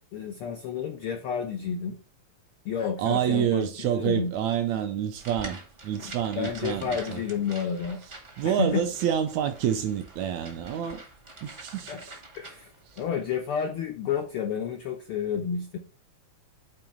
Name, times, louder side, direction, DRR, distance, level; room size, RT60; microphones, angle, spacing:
voice 1, 0.1-2.0 2.6-4.3 6.0-8.0 8.4-8.9 11.9-12.0 12.4-12.7 13.0-15.8, left 7 dB, 90° left, 1.2 m, -30 dB
voice 2, 3.0-7.2 8.4-11.0 11.4-12.2, right 10 dB, 80° right, 1.8 m, -28 dB
sound 1, 5.2-13.1, right 2 dB, 45° right, 0.7 m, -46 dB
8.9 x 3.1 x 4.9 m
omnidirectional pair, 3.6 m